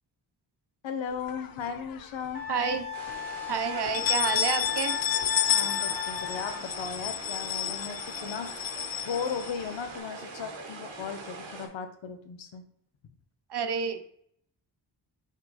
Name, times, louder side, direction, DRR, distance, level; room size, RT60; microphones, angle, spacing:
voice 1, 0.8-2.5 5.5-12.6, left 6 dB, 85° left, 7 dB, 0.7 m, -36 dB
sound 1, 1.3-2.2 2.6-2.7 3.1-3.2 3.7-10.0, left 10 dB, 50° left, 0.4 m, -31 dB
Wind instrument woodwind instrument, 2.3-6.7, left 7 dB, 20° left, 1.6 m, -36 dB
voice 2, 2.5-2.9 3.5-5.0 13.5-14.1, right 6 dB, 60° right, 8 dB, 0.7 m, -29 dB
sound 2, 2.9-11.7, right 3 dB, 90° right, 0.9 m, -43 dB
4.5 x 3.0 x 4.0 m, 0.68 s
cardioid pair, 55°, 45 cm